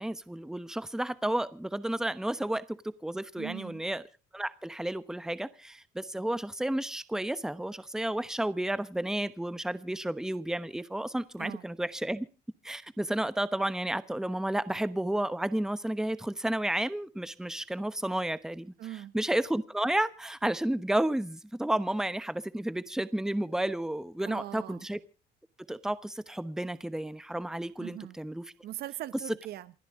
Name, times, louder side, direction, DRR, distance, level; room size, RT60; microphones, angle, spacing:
voice 1, 0.0-4.0 4.3-12.3 12.6-18.7 19.1-25.0 25.7-28.4, right 1 dB, 5° right, 1.0 m, -32 dB
voice 2, 3.4-3.8 11.4-11.7 18.8-19.1 24.2-24.9 27.8-28.2 28.6-29.7, right 14 dB, 70° right, 1.0 m, -41 dB
28.5 x 10.0 x 3.7 m
cardioid pair, 110°, 17 cm